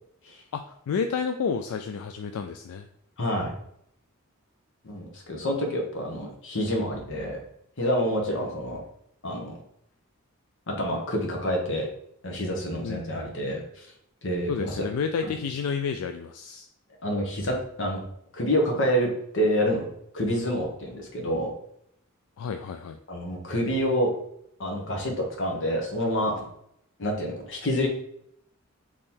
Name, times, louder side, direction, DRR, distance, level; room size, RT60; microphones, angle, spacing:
voice 1, 0.5-2.9 12.8-13.2 14.5-16.7 22.4-23.0, left 6 dB, 85° left, 6 dB, 0.3 m, -30 dB
voice 2, 3.2-3.5 4.8-7.4 7.8-8.8 9.2-9.5 10.8-11.9 12.2-13.6 14.2-14.9 15.2-15.3 17.0-18.0 18.3-19.9 20.1-21.5 23.1-24.1 24.6-26.4 27.0-27.9, equal, 60° left, 0 dB, 1.2 m, -27 dB
3.6 x 3.1 x 4.3 m, 0.72 s
head